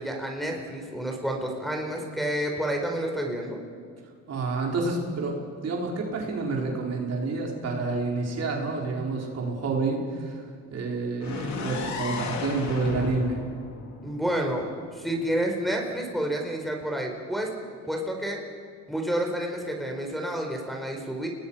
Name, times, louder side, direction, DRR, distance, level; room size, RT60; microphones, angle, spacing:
voice 1, 0.0-3.6 14.0-14.7 14.9-17.5 17.9-18.4 18.9-21.3, right 1 dB, ahead, 0 dB, 4.5 m, -29 dB
voice 2, 4.3-10.5 10.7-13.4, right 3 dB, 55° right, -1 dB, 4.9 m, -29 dB
sound 1, 11.2-15.1, left 4 dB, 65° left, 3.4 m, -34 dB
30.0 x 20.0 x 5.8 m, 2.1 s
cardioid pair, 90°, 30 cm